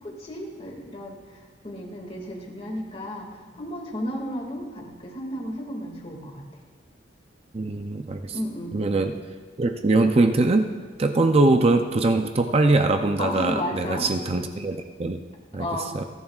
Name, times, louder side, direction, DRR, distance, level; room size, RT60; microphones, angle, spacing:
voice 1, 0.0-6.4 8.3-8.9 13.2-14.1 15.6-15.9, equal, 30° left, 0 dB, 2.1 m, -33 dB
voice 2, 7.5-8.3 8.7-9.1 9.6-10.7 11.0-15.2 15.5-15.7 15.9-16.0, right 2 dB, 30° right, 6 dB, 0.5 m, -22 dB
29.5 x 11.0 x 2.4 m, 1.5 s
head